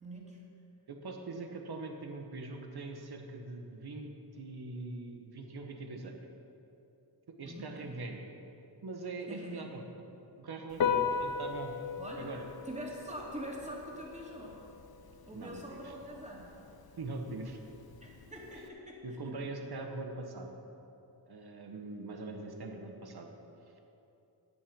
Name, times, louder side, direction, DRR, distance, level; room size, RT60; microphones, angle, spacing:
voice 1, 0.0-0.4 1.7-1.8 7.4-8.0 9.3-9.7 12.0-12.3 12.7-14.6 15.2-16.5 18.0-19.4, equal, 15° right, -3 dB, 2.9 m, -44 dB
voice 2, 0.9-6.2 7.4-8.2 8.8-9.8 10.4-11.7 12.2-12.5 15.3-15.9 17.0-17.6 19.0-20.5 21.3-23.3, right 3 dB, 60° right, 3 dB, 1.6 m, -42 dB
Piano, 10.7-18.7, left 6 dB, 60° left, 1.0 m, -38 dB
14.5 x 9.2 x 5.4 m, 2.9 s
cardioid pair, 75°, 42 cm